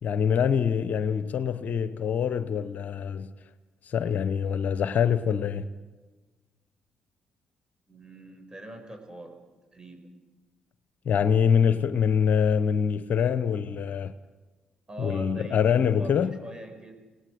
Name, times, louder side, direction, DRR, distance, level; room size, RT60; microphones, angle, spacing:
voice 1, 0.0-3.3 3.9-5.7 11.1-14.1 15.0-16.4, left 7 dB, 55° left, 0.8 m, -25 dB
voice 2, 7.9-9.4 9.7-10.1 14.9-15.6 16.0-16.9, right 1 dB, 25° right, 5.6 m, -42 dB
30.0 x 18.5 x 4.9 m
hypercardioid pair, 45°, 3 cm